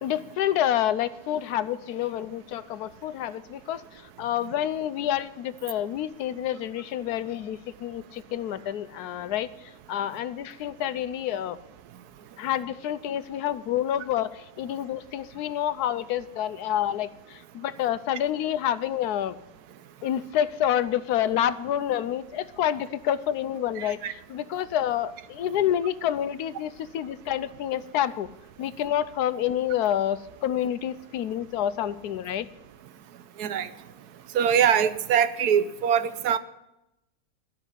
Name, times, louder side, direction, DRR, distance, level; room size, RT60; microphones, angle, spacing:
voice 1, 0.0-9.5 9.9-11.6 12.4-19.4 20.0-28.3 28.6-32.5, left 11 dB, 80° left, 14 dB, 1.2 m, -28 dB
voice 2, 23.8-24.1 33.4-33.7 34.3-36.4, right 8 dB, 80° right, 13 dB, 1.3 m, -23 dB
12.5 x 6.3 x 9.6 m, 0.88 s
omnidirectional pair, 1.7 m